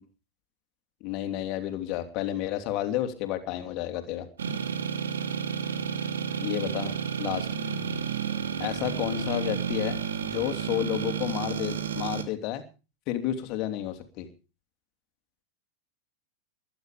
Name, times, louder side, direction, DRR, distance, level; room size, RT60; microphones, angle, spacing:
voice 1, 1.0-4.3 6.4-7.5 8.6-12.6 13.1-14.3, left 12 dB, 40° left, 7 dB, 3.1 m, -31 dB
sound 1, 4.4-12.2, right 7 dB, 65° right, 2.3 m, -31 dB
21.0 x 11.0 x 5.2 m, 0.34 s
figure-of-eight pair, 90°, 0 cm